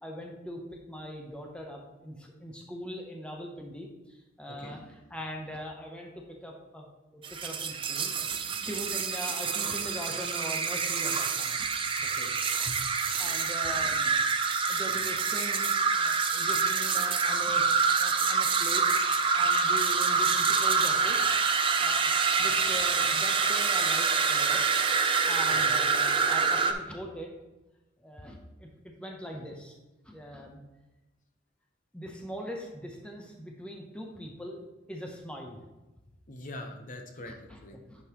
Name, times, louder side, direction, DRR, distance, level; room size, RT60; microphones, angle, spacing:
voice 1, 0.0-6.9 7.1-11.7 13.2-14.2 14.6-17.6 17.9-18.9 19.4-21.3 21.8-22.1 22.4-24.6 25.2-27.3 28.0-29.8 30.0-30.6 31.9-34.6 34.9-35.6 37.3-37.6 37.9-38.0, equal, 5° left, 0 dB, 0.8 m, -41 dB
sound 1, 7.2-26.7, right 5 dB, 25° right, 0.5 m, -26 dB
voice 2, 12.0-12.4 12.6-12.8 25.5-25.8 36.3-37.3 37.6-37.8, left 1 dB, 45° left, 3 dB, 0.9 m, -43 dB
9.7 x 5.3 x 3.0 m, 1.1 s
head